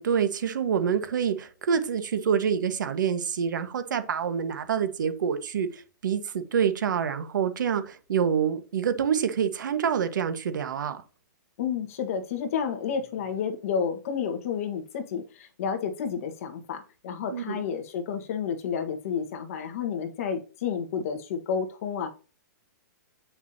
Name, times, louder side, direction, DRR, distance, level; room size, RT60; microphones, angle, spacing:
voice 1, 0.0-11.0 17.3-17.6, right 7 dB, 80° right, 1.4 m, -27 dB
voice 2, 11.6-22.1, left 7 dB, 45° left, 1.5 m, -30 dB
8.7 x 5.9 x 2.8 m
hypercardioid pair, 170°, 10 cm